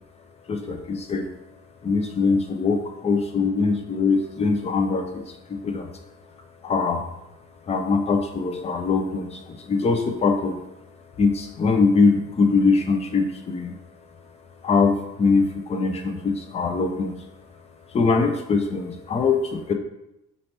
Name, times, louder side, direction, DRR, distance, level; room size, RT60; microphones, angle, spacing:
voice 1, 0.5-1.3 1.8-5.9 6.6-7.1 7.7-10.6 11.2-13.8 14.6-17.2 17.9-19.7, left 4 dB, 20° left, 5 dB, 0.3 m, -22 dB
5.2 x 3.2 x 2.9 m, 0.89 s
cardioid pair, 160°, 33 cm